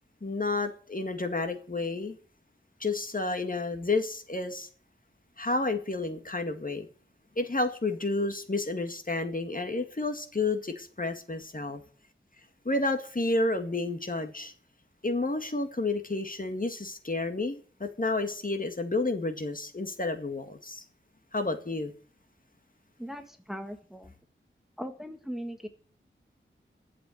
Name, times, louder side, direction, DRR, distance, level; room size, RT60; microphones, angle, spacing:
voice 1, 0.2-2.2 2.8-4.7 5.4-6.9 7.4-11.8 12.7-14.5 15.0-20.8 21.3-21.9, left 2 dB, 40° left, 2.0 m, -30 dB
voice 2, 23.0-24.1 24.8-25.7, equal, ahead, 1.6 m, -39 dB
11.5 x 8.0 x 9.2 m
wide cardioid pair, 75°, 21 cm